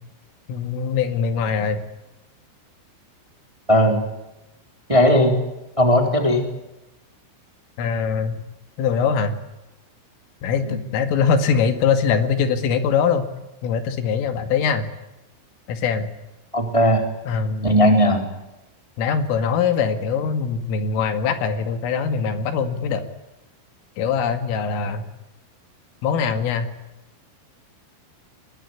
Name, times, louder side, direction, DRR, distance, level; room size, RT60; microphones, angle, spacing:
voice 1, 0.5-1.8 7.8-8.4 8.8-9.4 10.4-13.2 13.6-14.9 15.7-16.1 17.3-17.8 19.0-23.1 24.0-25.1 26.0-26.7, left 6 dB, 85° left, 8 dB, 4.6 m, -22 dB
voice 2, 3.7-4.0 4.9-5.3 5.8-6.4 10.7-10.8 16.5-17.0 17.6-18.2, equal, 5° right, 4 dB, 3.2 m, -17 dB
23.5 x 21.5 x 9.8 m, 0.96 s
omnidirectional pair, 5.7 m